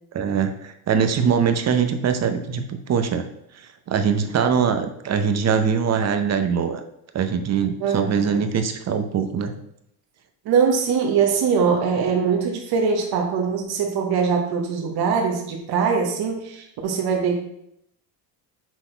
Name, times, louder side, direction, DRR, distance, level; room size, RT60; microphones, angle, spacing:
voice 1, 0.1-3.2 3.5-6.8 7.1-9.5, right 6 dB, 35° right, 8 dB, 0.7 m, -22 dB
voice 2, 7.8-8.4 10.4-17.3, right 6 dB, 55° right, 1 dB, 1.2 m, -22 dB
6.1 x 4.1 x 4.4 m, 0.76 s
cardioid pair, 120°, 47 cm